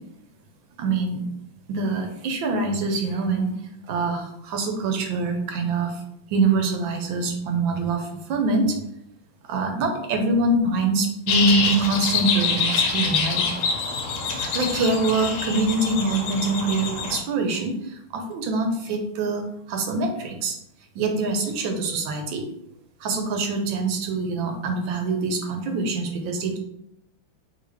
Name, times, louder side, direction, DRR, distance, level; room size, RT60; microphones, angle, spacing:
voice 1, 0.8-1.2 1.7-3.6 3.9-6.0 6.3-8.8 9.5-13.5 14.3-19.4 19.7-20.5 20.9-22.4 23.0-26.6, right 3 dB, 80° right, 4 dB, 1.4 m, -24 dB
sound 1, 11.3-17.2, left 5 dB, 75° left, 1.3 m, -25 dB
3.8 x 2.9 x 3.3 m, 0.79 s
omnidirectional pair, 2.1 m